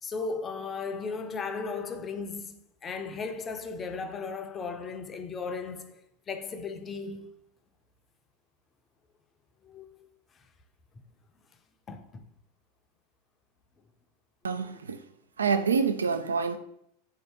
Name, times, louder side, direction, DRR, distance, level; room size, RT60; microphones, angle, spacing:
voice 1, 0.0-7.3 9.6-10.1 11.9-12.3, left 4 dB, 25° left, 0.5 m, -36 dB
voice 2, 14.4-15.0 15.4-16.6, right 5 dB, 90° right, 0.3 m, -27 dB
4.0 x 2.8 x 3.4 m
hypercardioid pair, 95°, 0 cm